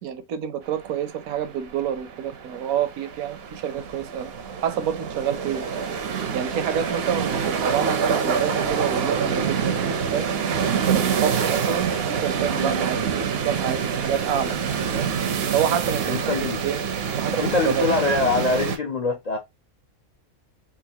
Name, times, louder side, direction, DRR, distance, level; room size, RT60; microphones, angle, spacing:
voice 1, 0.0-4.3 4.6-5.7 6.3-10.3 10.8-15.1 15.5-16.8 17.2-17.9, right 9 dB, 80° right, 1.1 m, -28 dB
sound 1, 0.7-18.8, right 6 dB, 60° right, 0.7 m, -26 dB
voice 2, 16.1-16.6 17.4-19.4, left 3 dB, 60° left, 0.4 m, -23 dB
3.9 x 2.5 x 2.7 m
omnidirectional pair, 1.5 m